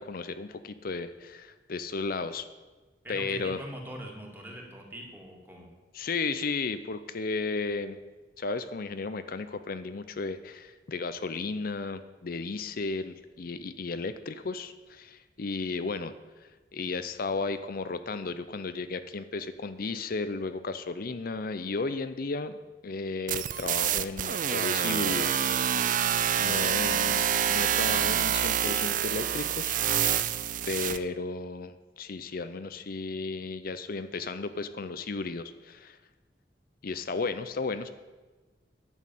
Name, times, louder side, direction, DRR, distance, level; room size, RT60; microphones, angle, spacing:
voice 1, 0.0-2.5 3.1-3.6 5.9-8.0 8.4-16.1 16.4-25.5 26.4-29.8 30.6-36.0 36.8-37.9, left 3 dB, 55° left, 11 dB, 0.6 m, -34 dB
voice 2, 3.0-5.7 26.8-27.1, equal, 10° right, -1 dB, 2.2 m, -43 dB
sound 1, 23.3-31.0, right 9 dB, 45° right, 0.5 m, -27 dB
11.0 x 6.4 x 9.2 m, 1.2 s
head